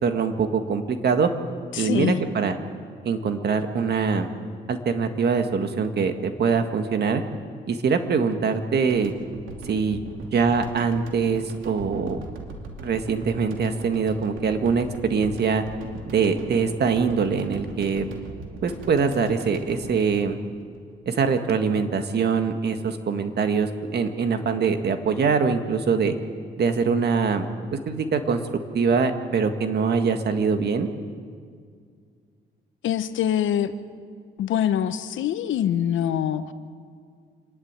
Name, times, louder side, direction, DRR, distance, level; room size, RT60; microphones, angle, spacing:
voice 1, 0.0-1.3 1.7-2.6 3.0-4.3 4.7-7.2 7.7-9.1 9.7-10.0 10.3-12.2 12.8-15.6 16.1-18.1 18.6-20.4 21.1-26.1 26.6-27.5 27.9-28.4 28.7-30.9, right 5 dB, 55° right, 7 dB, 1.8 m, -23 dB
voice 2, 1.7-2.2 32.8-33.7 34.4-36.5, left 10 dB, 75° left, 11 dB, 1.0 m, -24 dB
sound 1, 8.9-21.1, right 3 dB, 85° right, 2.6 m, -40 dB
27.0 x 11.5 x 9.0 m, 2.1 s
cardioid pair, 90°, 20 cm